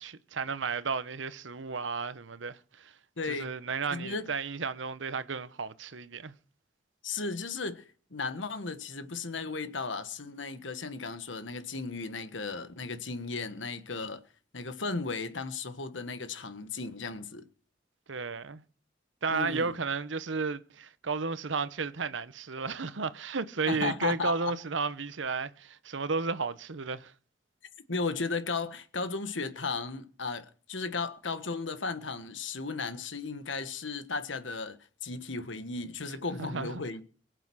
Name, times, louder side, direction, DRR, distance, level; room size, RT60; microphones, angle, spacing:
voice 1, 0.0-2.9 3.3-6.3 18.1-18.6 19.2-27.1 36.4-36.8, right 4 dB, 85° right, 0.9 m, -33 dB
voice 2, 3.2-3.5 3.9-4.3 7.0-7.8 8.1-14.2 14.5-17.5 19.3-19.7 23.7-24.5 27.9-34.8 35.0-37.0, left 4 dB, 90° left, 1.5 m, -35 dB
23.0 x 7.9 x 6.2 m
head